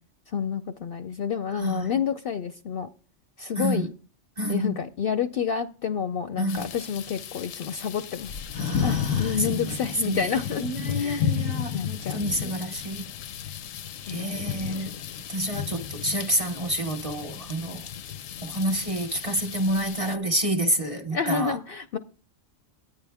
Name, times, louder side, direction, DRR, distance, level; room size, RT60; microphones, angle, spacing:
voice 1, 0.3-2.9 3.4-3.9 4.5-8.3 8.8-10.6 10.9-11.4 11.7-12.6 14.1-14.8 21.1-22.0, left 7 dB, 60° left, 0.7 m, -29 dB
voice 2, 3.6-3.9 4.4-4.8 6.4-6.6 8.6-9.6 10.0-10.3 10.6-13.1 14.1-14.9 15.3-17.8 18.4-21.6, right 1 dB, 30° right, 0.8 m, -28 dB
sound 1, 6.5-20.2, left 9 dB, 85° left, 1.0 m, -33 dB
10.5 x 9.5 x 3.5 m
omnidirectional pair, 1.3 m